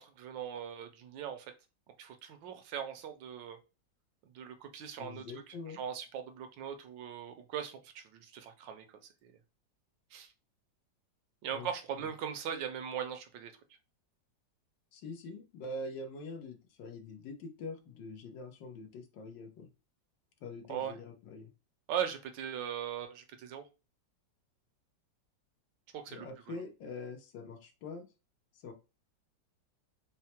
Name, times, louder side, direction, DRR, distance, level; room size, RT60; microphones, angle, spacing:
voice 1, 0.0-1.5 2.0-3.6 4.3-8.9 9.2-9.4 10.1-10.3 11.4-13.5 20.7-20.9 21.9-23.6 25.9-26.6, right 8 dB, 80° right, 7 dB, 1.4 m, -40 dB
voice 2, 5.0-5.8 11.5-11.7 14.9-19.7 20.4-21.5 26.1-28.0 28.6-28.7, left 2 dB, 90° left, 5 dB, 1.6 m, -44 dB
4.5 x 2.1 x 4.3 m, 0.29 s
omnidirectional pair, 1.9 m